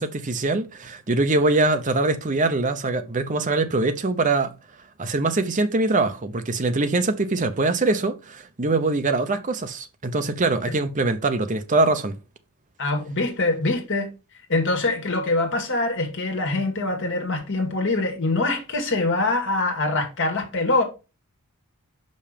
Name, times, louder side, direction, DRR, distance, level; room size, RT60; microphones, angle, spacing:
voice 1, 0.0-4.6 5.0-12.2, right 3 dB, 35° right, 0.8 m, -23 dB
voice 2, 12.8-14.1 14.5-20.8, left 2 dB, 55° left, 1.9 m, -24 dB
5.8 x 5.4 x 5.1 m
head